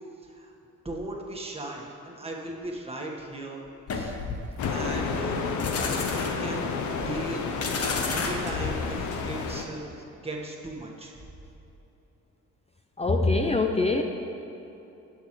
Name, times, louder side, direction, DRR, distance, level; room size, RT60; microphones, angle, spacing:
voice 1, 0.8-3.6 3.9-4.1 4.6-5.4 6.1-6.7 7.0-7.5 8.1-11.2, right 1 dB, 20° right, -1 dB, 1.7 m, -37 dB
sound 1, 3.9-9.6, left 4 dB, 50° left, 1.2 m, -32 dB
sound 2, 4.6-9.6, left 5 dB, 75° left, 0.9 m, -31 dB
voice 2, 13.0-14.0, left 3 dB, 20° left, 4 dB, 0.6 m, -23 dB
17.5 x 6.1 x 3.3 m, 3.0 s
cardioid pair, 90°, 30 cm